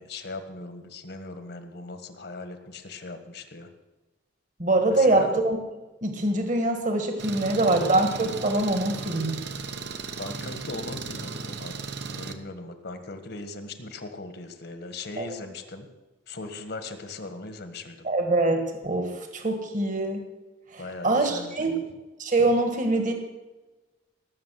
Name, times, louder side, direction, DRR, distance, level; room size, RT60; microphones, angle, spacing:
voice 1, 0.0-3.7 4.9-5.3 7.4-7.8 10.1-11.8 12.1-15.9 16.3-18.1 20.8-21.8, left 3 dB, 55° left, 8 dB, 1.6 m, -39 dB
voice 2, 4.6-5.6 6.0-9.4 15.2-15.3 18.0-20.2 20.7-21.8 22.2-23.1, right 2 dB, 40° right, 5 dB, 1.7 m, -24 dB
Engine, 7.2-12.3, right 4 dB, 60° right, 1.1 m, -36 dB
18.5 x 7.3 x 7.6 m, 1.2 s
head